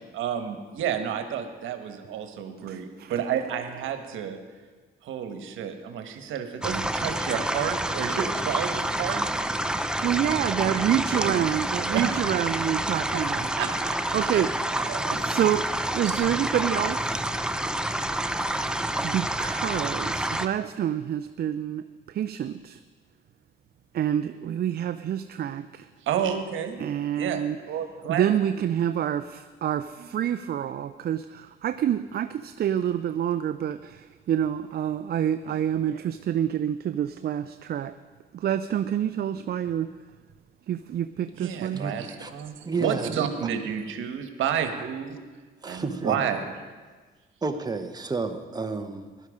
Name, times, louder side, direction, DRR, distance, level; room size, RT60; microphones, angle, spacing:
voice 1, 0.0-4.4 5.0-9.3 10.5-11.4 11.8-12.3 12.9-13.2 13.5-14.0 14.3-14.4 14.9-15.2 16.0-16.2 26.1-26.8 27.1-28.2 30.0-30.1 41.4-45.2 45.6-46.4, right 8 dB, 85° right, 7 dB, 1.3 m, -31 dB
voice 2, 2.7-3.1 10.0-13.5 14.1-14.5 15.2-15.7 15.9-17.2 19.0-22.8 23.9-25.9 26.8-27.6 28.1-37.9 38.3-39.9 40.7-41.8, right 10 dB, 50° right, 11 dB, 0.5 m, -27 dB
sound 1, 6.6-20.5, right 1 dB, 5° right, 0.7 m, -28 dB
voice 3, 41.7-42.3 42.6-43.2 44.7-44.8 45.6-46.2 47.4-49.3, right 4 dB, 20° right, 6 dB, 1.1 m, -31 dB
16.5 x 12.0 x 5.0 m, 1.4 s
cardioid pair, 90°, 20 cm